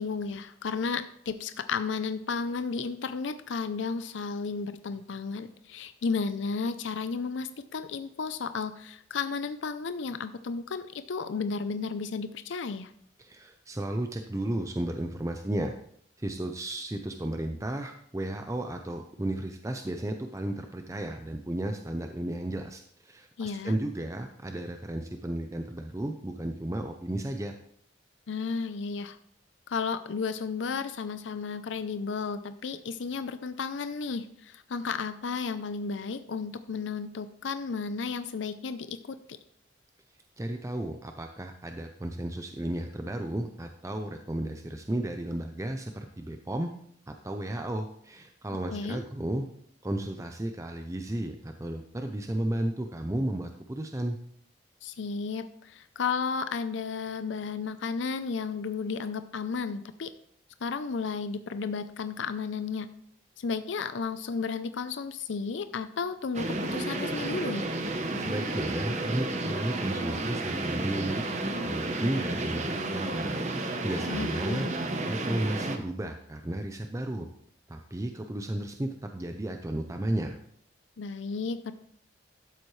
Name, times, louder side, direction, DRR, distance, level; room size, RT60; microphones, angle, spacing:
voice 1, 0.0-12.9 23.4-23.8 28.3-29.2 29.7-39.2 48.7-49.0 54.8-60.1 60.6-62.9 63.4-67.7 74.1-74.7 81.0-81.7, left 5 dB, 80° left, 11 dB, 0.5 m, -33 dB
voice 2, 13.2-15.7 16.2-27.5 40.4-46.7 47.1-49.4 49.8-54.2 68.2-71.2 71.6-73.3 73.6-77.3 77.7-80.4, right 1 dB, 15° right, 5 dB, 0.5 m, -33 dB
sound 1, 66.3-75.8, right 2 dB, 40° right, 0.9 m, -32 dB
12.5 x 7.5 x 3.2 m, 0.66 s
head